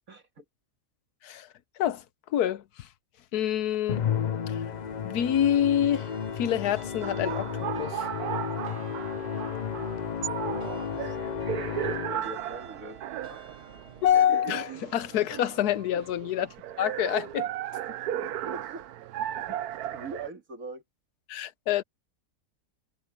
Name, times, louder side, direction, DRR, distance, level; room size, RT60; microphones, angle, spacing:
voice 1, 0.1-0.4 10.5-11.2 11.8-13.0 13.3-13.4 16.4-16.5 17.9-18.8 19.2-19.6 19.9-20.8, right 3 dB, 60° right, 3.0 m, -42 dB
voice 2, 2.3-2.9 3.3-4.1 4.5-4.6 5.0-6.1 6.4-8.1 14.0-16.5 16.8-17.5 21.3-21.8, left 10 dB, 80° left, 1.3 m, -26 dB
Musical instrument, 3.9-12.4, left 7 dB, 55° left, 0.4 m, -33 dB
sound 1, 4.5-14.2, right 5 dB, 45° right, 1.5 m, -51 dB
sound 2, 7.0-20.3, right 11 dB, 75° right, 1.2 m, -36 dB
omnidirectional pair, 1.6 m